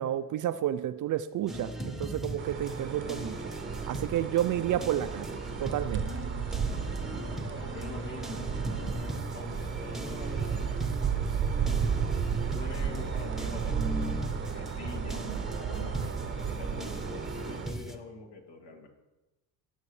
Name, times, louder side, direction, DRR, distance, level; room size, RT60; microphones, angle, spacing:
voice 1, 0.0-3.5 3.8-5.3 5.6-6.1, right 11 dB, 40° right, 11 dB, 0.5 m, -30 dB
sound 1, 1.5-18.0, right 1 dB, ahead, 1.1 m, -39 dB
sound 2, 2.4-17.7, right 7 dB, 25° right, 0.9 m, -33 dB
voice 2, 6.7-12.0 12.5-18.9, left 3 dB, 55° left, 2 dB, 2.6 m, -46 dB
18.5 x 7.3 x 3.2 m, 1.1 s
supercardioid pair, 100°, 47 cm